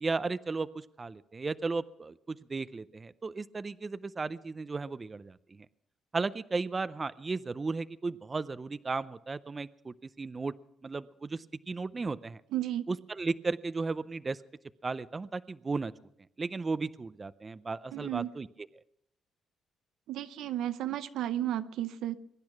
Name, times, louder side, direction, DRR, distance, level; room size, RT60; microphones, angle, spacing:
voice 1, 0.0-5.6 6.1-10.5 10.8-12.4 12.9-14.4 14.8-15.9 16.4-18.5, right 3 dB, 30° right, 15 dB, 0.5 m, -35 dB
voice 2, 12.5-12.9 17.9-18.3 20.1-22.2, right 12 dB, 85° right, 11 dB, 0.7 m, -33 dB
22.5 x 10.5 x 6.0 m, 0.78 s
cardioid pair, 90°, 0 cm